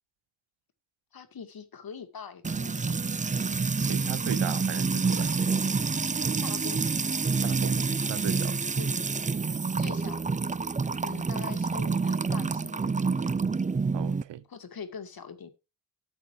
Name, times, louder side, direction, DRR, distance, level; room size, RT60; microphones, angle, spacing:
voice 1, 1.1-2.9 6.4-6.9 8.8-8.9 9.8-10.2 11.0-13.3 14.5-15.5, left 6 dB, 55° left, 2.2 m, -43 dB
Music / Water tap faucet / Trickle dribble, 2.4-14.2, right 4 dB, 20° right, 0.5 m, -28 dB
voice 2, 3.8-5.3 7.4-8.6 13.9-14.4, right 11 dB, 80° right, 0.8 m, -37 dB
13.0 x 8.3 x 3.3 m
cardioid pair, 80°, 42 cm